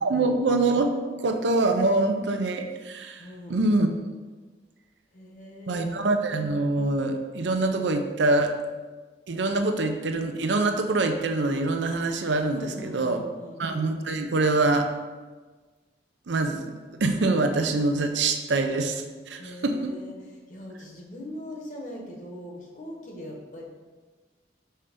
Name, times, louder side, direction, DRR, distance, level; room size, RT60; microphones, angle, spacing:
voice 1, 0.0-0.9 1.2-3.2 3.5-3.9 5.7-8.5 9.3-13.2 13.6-14.9 16.3-16.7 17.0-19.9, right 2 dB, 90° right, 6 dB, 0.6 m, -24 dB
voice 2, 3.2-3.6 5.1-6.2 12.5-13.6 19.4-20.1 20.5-23.6, left 1 dB, 45° left, -1 dB, 1.1 m, -41 dB
5.6 x 3.3 x 5.0 m, 1.4 s
head